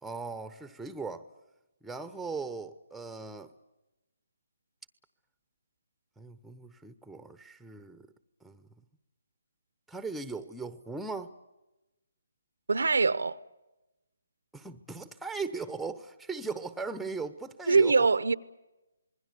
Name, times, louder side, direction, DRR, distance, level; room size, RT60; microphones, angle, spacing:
voice 1, 0.0-1.3 1.8-3.5 6.2-8.1 8.4-8.7 9.9-11.3 14.5-18.1, right 4 dB, ahead, 0.9 m, -38 dB
voice 2, 12.7-13.4 17.7-18.3, right 4 dB, 85° right, 0.9 m, -23 dB
27.0 x 21.0 x 7.0 m
hypercardioid pair, 155°, 0 cm